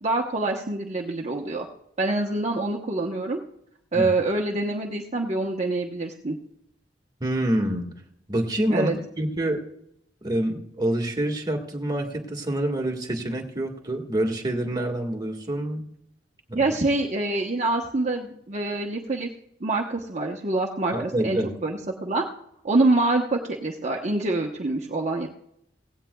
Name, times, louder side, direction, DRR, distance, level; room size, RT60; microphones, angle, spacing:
voice 1, 0.0-1.7 2.0-3.4 3.9-6.4 8.7-8.9 16.5-19.3 19.6-22.2 22.6-25.3, right 2 dB, 40° right, 0 dB, 1.0 m, -25 dB
voice 2, 7.2-7.9 8.3-9.6 10.2-15.8 16.5-16.7 20.9-21.5, right 1 dB, 20° right, 2 dB, 1.7 m, -27 dB
17.5 x 16.0 x 2.3 m, 0.76 s
head